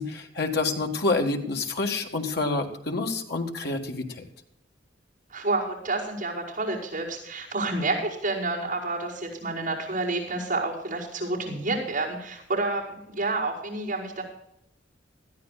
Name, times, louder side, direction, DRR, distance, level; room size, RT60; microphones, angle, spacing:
voice 1, 0.0-4.2, left 3 dB, 60° left, 3 dB, 1.9 m, -28 dB
voice 2, 5.3-14.2, right 2 dB, 45° right, -5 dB, 5.2 m, -29 dB
20.0 x 13.5 x 2.5 m, 0.75 s
head